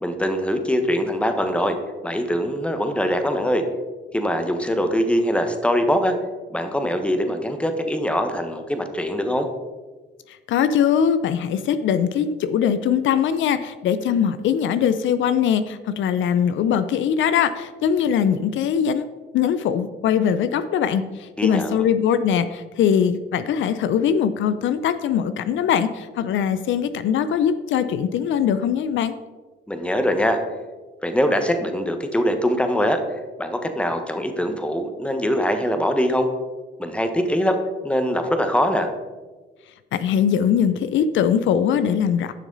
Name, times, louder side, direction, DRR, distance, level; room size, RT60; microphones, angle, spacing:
voice 1, 0.0-1.7 2.0-3.6 4.1-6.1 6.5-9.5 21.4-21.8 29.7-30.4 31.0-33.0 33.4-36.3 36.8-37.6 37.8-38.9, equal, 5° left, 6 dB, 1.1 m, -22 dB
voice 2, 10.3-19.0 19.3-29.1 39.9-42.3, left 8 dB, 75° left, 12 dB, 0.5 m, -21 dB
11.0 x 6.0 x 4.0 m, 1.3 s
cardioid pair, 90°, 20 cm